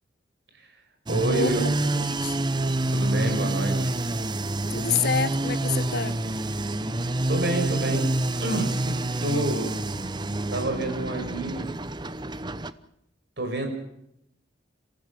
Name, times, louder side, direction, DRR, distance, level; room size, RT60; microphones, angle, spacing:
sound 1, 1.1-12.7, right 2 dB, 25° right, 0.8 m, -27 dB
voice 1, 1.1-1.6 2.9-3.9 7.3-8.1 8.4-9.7 10.5-11.7 13.4-13.7, right 1 dB, 60° right, 4 dB, 6.3 m, -28 dB
voice 2, 2.0-2.4 4.7-6.2, left 6 dB, 55° left, 14 dB, 1.0 m, -28 dB
27.0 x 15.5 x 7.5 m, 0.78 s
head